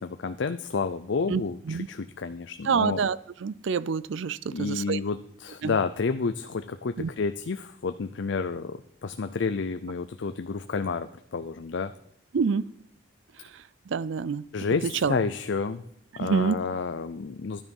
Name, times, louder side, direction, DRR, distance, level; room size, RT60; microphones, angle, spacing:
voice 1, 0.0-3.0 4.5-11.9 14.5-15.8 16.2-17.6, left 4 dB, 65° left, 10 dB, 0.5 m, -30 dB
voice 2, 2.7-3.2 3.4-5.0 5.6-5.7 7.0-7.1 12.3-12.7 13.9-14.4 15.0-15.1 16.2-16.6, right 5 dB, 65° right, 19 dB, 0.4 m, -26 dB
12.0 x 9.9 x 5.4 m, 0.74 s
head